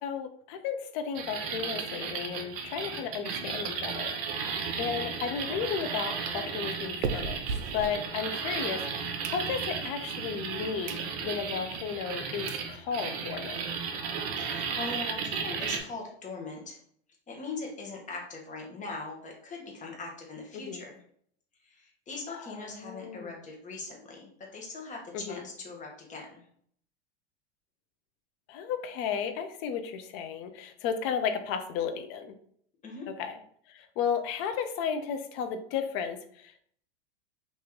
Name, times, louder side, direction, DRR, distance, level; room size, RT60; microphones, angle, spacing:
voice 1, 0.0-7.4 7.7-13.6 20.7-20.8 22.8-23.3 25.3-25.4 28.5-32.3 33.2-33.3 33.7-36.6, left 7 dB, 45° left, 8 dB, 0.6 m, -34 dB
sound 1, 1.1-15.8, right 6 dB, 55° right, 0.8 m, -34 dB
sound 2, 4.6-8.6 9.0-9.9 10.4-10.5 10.8-11.1 11.5-11.6 12.2-12.3 12.5-12.7 13.1-13.2 13.4-13.5 13.8-13.9 14.2-15.3, right 5 dB, 85° right, 0.5 m, -39 dB
voice 2, 14.4-16.8 17.3-21.0 21.6-26.4 32.8-33.1, left 3 dB, 20° left, 0 dB, 1.1 m, -41 dB
3.0 x 2.7 x 3.6 m, 0.63 s
hypercardioid pair, 110°, 33 cm